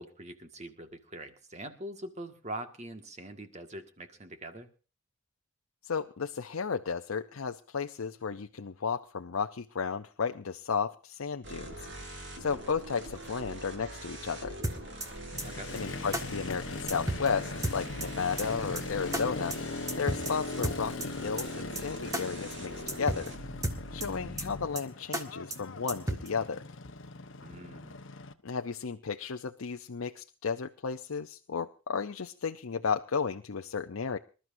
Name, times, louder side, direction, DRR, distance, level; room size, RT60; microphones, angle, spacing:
voice 1, 0.0-4.7 15.4-15.7 27.4-28.0, right 1 dB, 35° right, 6 dB, 1.7 m, -43 dB
voice 2, 5.8-11.9 12.4-14.6 15.7-19.6 20.0-23.3 23.9-26.6 28.4-34.2, left 5 dB, 85° left, 6 dB, 0.7 m, -33 dB
sound 1, 11.4-24.7, right 1 dB, 60° right, 4.4 m, -44 dB
sound 2, 14.6-15.1 15.4-15.5 15.8-15.9 16.1-16.2 16.5-16.6 16.9-17.3 17.6-18.1 18.4-18.5 18.8-18.9 19.1-19.2 19.5-19.6 19.9-20.3 20.6-21.1 21.4-21.5 21.8-21.9 22.1-22.2 22.5-22.6 22.9-23.3 23.6-24.1 24.4-24.5 24.8-24.9 25.1-25.2 25.5-25.6 25.9-26.3, right 1 dB, 15° right, 1.6 m, -32 dB
Motorcycle, 15.3-28.3, left 3 dB, 65° left, 1.1 m, -40 dB
26.0 x 12.5 x 2.7 m, 0.35 s
head